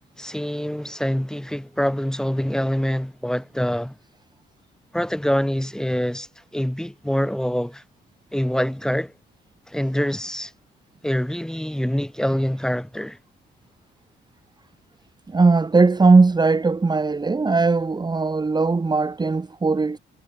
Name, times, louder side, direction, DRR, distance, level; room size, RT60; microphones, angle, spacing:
voice 1, 0.2-3.9 4.9-6.3 6.5-7.8 8.3-9.1 9.7-10.5 11.0-13.2, equal, 5° left, 2.0 m, -25 dB
voice 2, 15.3-20.0, right 3 dB, 20° right, 1.2 m, -19 dB
cardioid pair, 90°, 20 cm